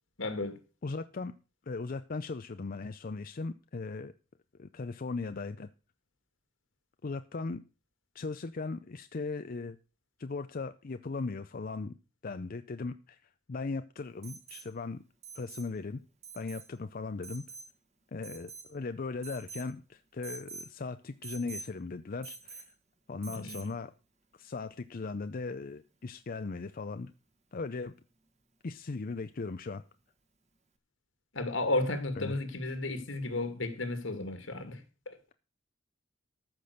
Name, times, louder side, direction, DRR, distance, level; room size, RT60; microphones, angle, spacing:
voice 1, 0.2-0.6 23.2-23.7 31.3-35.2, left 2 dB, 75° left, 2.2 m, -33 dB
voice 2, 0.8-1.3 1.7-4.1 4.6-5.7 7.0-7.6 8.1-9.8 10.2-11.9 12.2-13.2 13.5-15.0 15.3-16.0 16.3-17.4 18.1-22.7 23.1-23.9 24.4-27.1 27.5-27.9 28.6-29.8 32.2-32.3, left 3 dB, 45° left, 0.5 m, -38 dB
Alarm, 14.2-14.7 15.2-15.7 16.2-16.7 17.2-17.7 18.2-18.7 19.2-19.7 20.2-20.7 21.2-21.7 22.2-22.7 23.2-23.7 25.5-25.6, right 4 dB, 35° right, 1.6 m, -46 dB
14.0 x 6.1 x 6.5 m
head